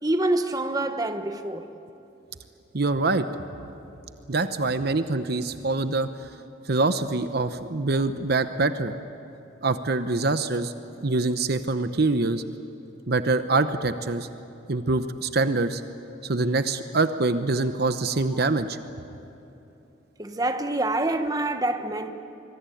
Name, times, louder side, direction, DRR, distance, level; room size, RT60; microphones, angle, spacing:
voice 1, 0.0-1.7 13.5-13.6 20.2-22.1, right 2 dB, 20° right, 1.2 m, -26 dB
voice 2, 2.7-3.2 4.3-6.1 6.7-8.9 9.6-10.7 11.0-12.4 13.1-14.3 14.7-15.8 16.2-18.8, right 3 dB, 55° right, 0.9 m, -24 dB
25.5 x 23.0 x 9.3 m
head